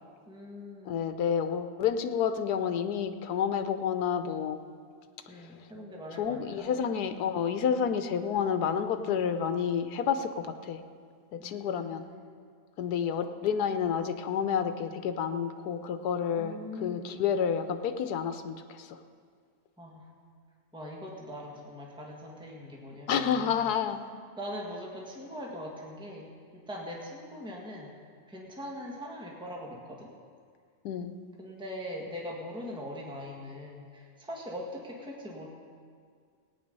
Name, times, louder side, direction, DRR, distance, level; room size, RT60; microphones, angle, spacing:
voice 1, 0.3-1.1 5.3-6.8 11.4-12.3 12.9-13.5 16.4-17.2 19.8-20.1 20.7-23.6 24.4-27.9 28.3-30.1 31.4-35.5, left 1 dB, 5° right, -2 dB, 1.7 m, -42 dB
voice 2, 0.9-4.6 6.2-10.8 11.3-12.0 12.8-19.0 23.1-24.0 30.8-31.1, left 7 dB, 85° left, 9 dB, 1.3 m, -29 dB
18.0 x 9.5 x 5.4 m, 2.1 s
omnidirectional pair, 1.6 m